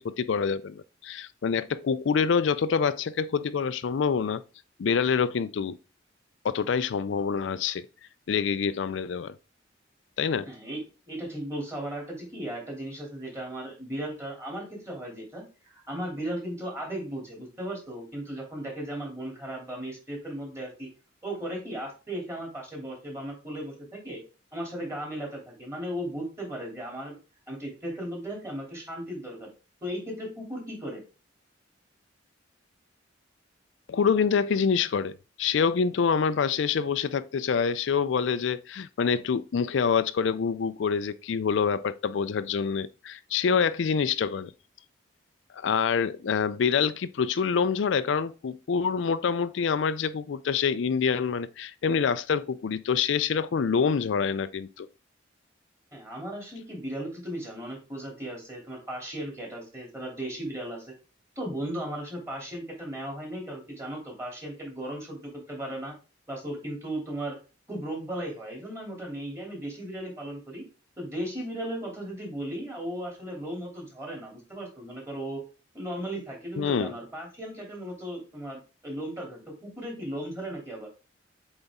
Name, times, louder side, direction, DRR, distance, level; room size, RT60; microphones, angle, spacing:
voice 1, 0.0-4.4 4.8-5.8 6.4-7.8 8.3-9.3 10.2-10.5 33.9-44.5 45.5-54.9 76.6-76.9, left 6 dB, 75° left, 0.4 m, -26 dB
voice 2, 10.5-10.8 11.1-20.9 21.2-24.2 24.5-27.2 27.5-29.5 29.8-31.0 55.9-60.9 61.4-65.9 66.3-67.4 67.7-70.6 71.0-75.4 75.7-80.9, right 1 dB, 15° right, 2.9 m, -36 dB
8.0 x 4.0 x 3.6 m
head